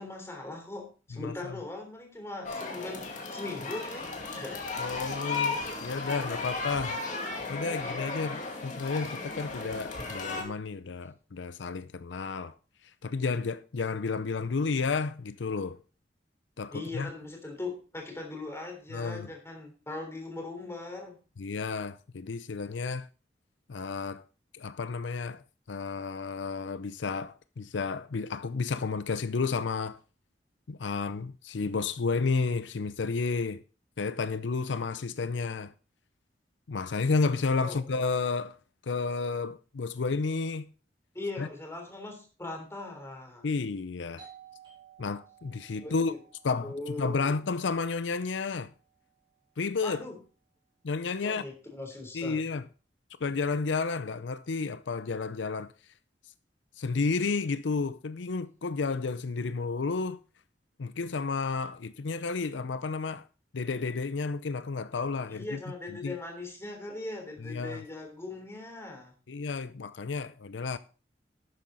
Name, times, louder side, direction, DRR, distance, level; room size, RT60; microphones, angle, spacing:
voice 1, 0.0-4.6 16.7-21.2 37.6-37.8 41.1-43.5 45.8-46.2 46.6-47.4 49.8-50.2 51.2-52.4 65.3-69.1, left 2 dB, 15° left, 3.4 m, -40 dB
voice 2, 1.1-1.5 4.8-7.0 7.5-12.5 13.0-15.8 16.6-17.1 18.9-19.3 21.4-23.1 23.7-24.2 24.5-25.4 25.7-30.0 30.7-33.6 34.0-35.7 36.7-38.6 38.9-40.7 41.4-41.5 43.4-44.3 45.0-46.1 46.4-48.7 49.6-50.1 50.8-51.4 52.1-52.6 53.2-55.7 56.8-60.2 60.8-63.2 63.5-65.6 66.0-66.2 67.4-67.8 69.3-70.8, left 4 dB, 85° left, 0.6 m, -31 dB
sound 1, 2.4-10.4, left 3 dB, 45° left, 2.4 m, -35 dB
Doorbell, 44.2-49.6, right 8 dB, 25° right, 5.1 m, -56 dB
11.5 x 8.7 x 4.0 m
head